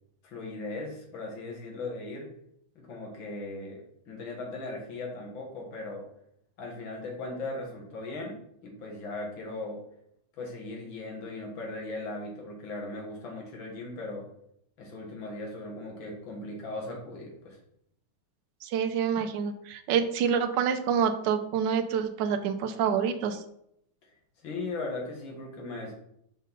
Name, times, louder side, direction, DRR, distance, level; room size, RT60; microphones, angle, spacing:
voice 1, 0.2-2.3 2.8-6.1 6.6-9.8 10.4-14.3 14.8-17.6 24.4-25.9, left 2 dB, 65° left, -1 dB, 2.3 m, -38 dB
voice 2, 18.6-23.4, right 7 dB, 70° right, 7 dB, 1.2 m, -27 dB
5.3 x 5.2 x 4.0 m, 0.74 s
omnidirectional pair, 2.4 m